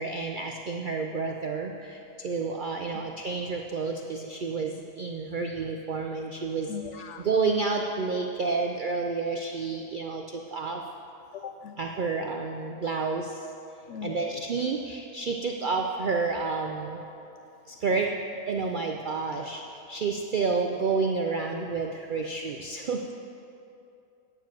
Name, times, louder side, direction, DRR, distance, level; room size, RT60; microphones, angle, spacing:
voice 1, 0.0-10.8 11.8-13.4 14.0-17.0 17.7-18.1 18.5-23.0, right 4 dB, 80° right, 3 dB, 0.4 m, -30 dB
voice 2, 6.7-7.2 11.3-11.8 13.9-14.4, left 8 dB, 65° left, 8 dB, 0.8 m, -39 dB
9.2 x 7.4 x 7.5 m, 2.7 s
omnidirectional pair, 1.6 m